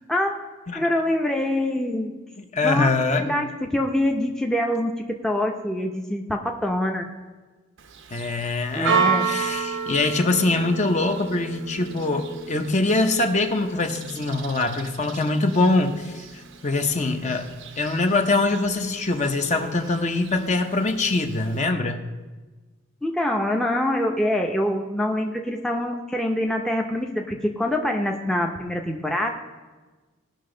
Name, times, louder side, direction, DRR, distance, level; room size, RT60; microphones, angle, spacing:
voice 1, 0.7-2.2 2.6-2.9 3.2-7.1 8.7-9.2 23.0-29.3, left 1 dB, 5° left, 1 dB, 0.7 m, -25 dB
voice 2, 2.5-3.3 8.1-16.2 16.6-17.5 17.8-22.0, left 2 dB, 35° left, 5 dB, 0.8 m, -23 dB
Church bell, 7.8-21.6, right 6 dB, 60° right, 0.7 m, -32 dB
17.5 x 5.9 x 3.8 m, 1.3 s
head